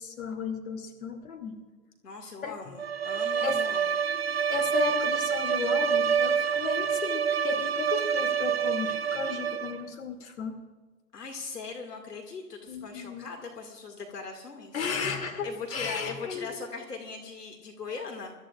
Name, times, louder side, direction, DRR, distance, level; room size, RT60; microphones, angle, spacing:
voice 1, 0.0-1.6 2.4-2.6 3.4-3.6 4.5-10.6 12.7-13.3 14.7-16.6, left 5 dB, 60° left, 4 dB, 2.6 m, -34 dB
voice 2, 2.0-4.0 11.1-14.9 15.4-18.3, left 4 dB, 80° left, 3 dB, 2.3 m, -40 dB
Bowed string instrument, 2.8-9.9, right 7 dB, 45° right, 0.4 m, -27 dB
25.0 x 14.0 x 2.5 m, 1.3 s
hypercardioid pair, 145°, 48 cm